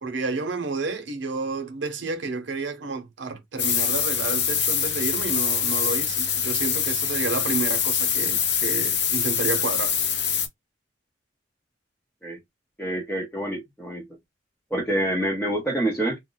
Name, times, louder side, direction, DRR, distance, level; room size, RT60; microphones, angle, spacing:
voice 1, 0.0-10.0, right 3 dB, 80° right, 0.8 m, -30 dB
sound 1, 3.6-10.5, left 8 dB, 65° left, 0.6 m, -24 dB
voice 2, 12.8-14.1 14.7-16.2, right 1 dB, 10° left, 0.8 m, -27 dB
2.4 x 2.2 x 3.8 m
head